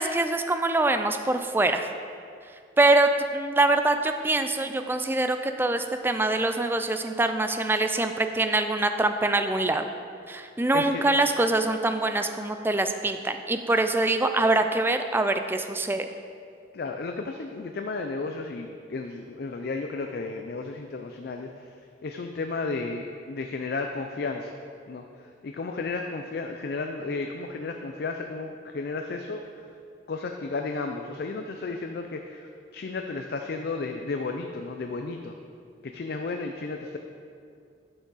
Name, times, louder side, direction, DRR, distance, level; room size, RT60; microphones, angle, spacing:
voice 1, 0.0-1.9 2.8-9.9 10.3-16.1, right 2 dB, 10° right, 7 dB, 0.4 m, -24 dB
voice 2, 16.7-21.7 22.0-24.5 24.9-25.0 25.4-29.5 30.1-35.4 35.8-37.0, left 3 dB, 60° left, 4 dB, 0.4 m, -33 dB
10.0 x 5.9 x 4.0 m, 2.4 s
head